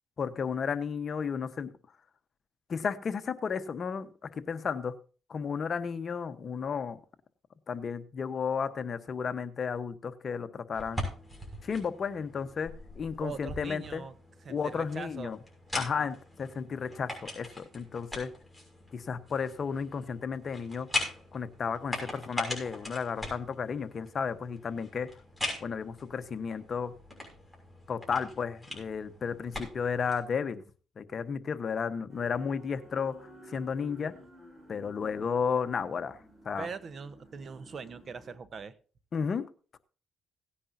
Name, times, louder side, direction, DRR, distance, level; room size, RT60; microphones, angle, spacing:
voice 1, 0.2-1.7 2.7-4.9 5.3-7.0 7.7-11.1 11.6-14.0 14.5-15.4 15.7-18.3 18.9-20.9 21.3-25.1 25.6-26.9 27.9-30.6 31.0-34.1 34.7-36.2 36.4-36.7 39.1-39.8, left 6 dB, 45° left, 11 dB, 1.0 m, -33 dB
sound 1, 10.7-30.2, left 1 dB, 5° right, 6.1 m, -41 dB
voice 2, 13.2-14.1 14.4-15.4 15.9-16.1 36.6-38.8, right 5 dB, 45° right, 14 dB, 1.0 m, -41 dB
sound 2, 32.1-38.4, equal, 25° right, 6.2 m, -53 dB
17.5 x 9.9 x 2.7 m, 0.37 s
cardioid pair, 90°, 0 cm